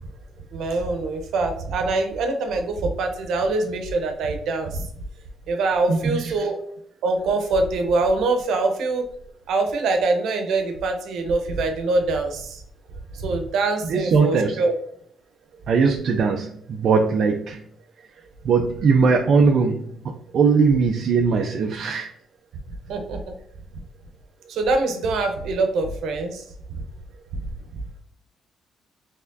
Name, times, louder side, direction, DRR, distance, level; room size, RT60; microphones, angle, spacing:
voice 1, 0.5-4.9 5.5-6.6 7.0-9.0 9.5-12.6 13.1-14.7 22.9-23.3 24.5-26.4, right 3 dB, 80° right, 5 dB, 0.8 m, -24 dB
voice 2, 5.9-6.5 13.8-14.6 15.7-17.6 18.4-22.1, right 5 dB, 65° right, 3 dB, 0.4 m, -20 dB
4.3 x 3.4 x 2.6 m, 0.65 s
cardioid pair, 90°, 0 cm